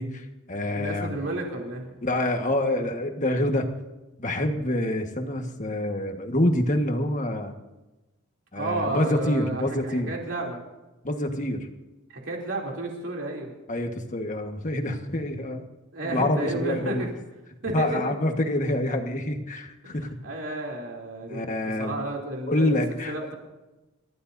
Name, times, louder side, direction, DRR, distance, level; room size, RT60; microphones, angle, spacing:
voice 1, 0.0-1.2 2.0-3.7 4.2-7.5 8.5-10.1 11.0-11.7 13.7-15.6 16.1-17.1 17.7-20.1 21.3-22.0 22.5-23.1, left 1 dB, 35° left, 4 dB, 1.5 m, -26 dB
voice 2, 0.7-2.0 8.5-10.6 12.1-13.5 15.9-17.1 17.6-18.1 19.8-22.8 23.1-23.3, right 2 dB, 65° right, -1 dB, 3.0 m, -32 dB
28.5 x 14.5 x 2.7 m, 1.1 s
head